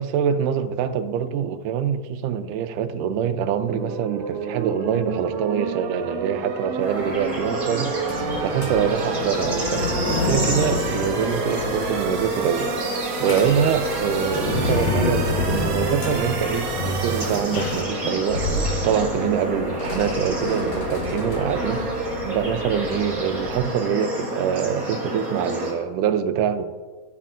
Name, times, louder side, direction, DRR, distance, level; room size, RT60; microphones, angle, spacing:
voice 1, 0.0-8.0 8.4-12.7 13.2-18.5 18.8-21.8 22.2-26.7, right 8 dB, 85° right, 2.2 m, -24 dB
sound 1, 3.7-17.8, right 5 dB, 65° right, 1.8 m, -31 dB
Bird / Insect / Frog, 6.8-25.7, right 1 dB, 30° right, 2.9 m, -30 dB
sound 2, 7.0-23.6, left 2 dB, 65° left, 2.3 m, -29 dB
16.0 x 7.4 x 2.5 m
omnidirectional pair, 3.6 m